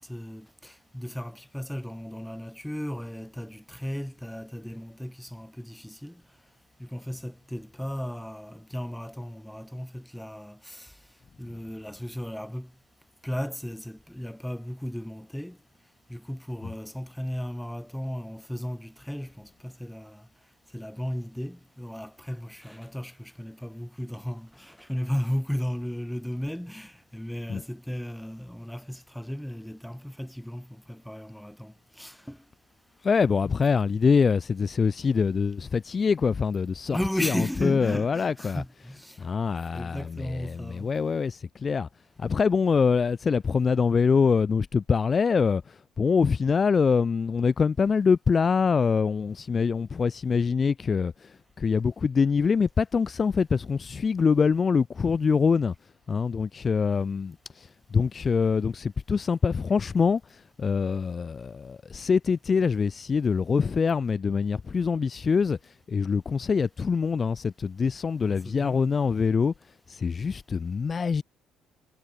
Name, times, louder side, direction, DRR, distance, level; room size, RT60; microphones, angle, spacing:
voice 1, 0.0-6.2 6.8-11.0 11.4-12.7 13.2-15.6 16.1-20.3 20.7-32.4 36.9-39.3 39.7-40.9 68.2-68.9, equal, 5° left, 1.7 m, -35 dB
voice 2, 33.0-38.6 39.2-41.9 42.2-55.7 56.1-65.6 65.9-69.5 69.9-71.2, left 5 dB, 40° left, 0.5 m, -24 dB
supercardioid pair, 65°, 0 cm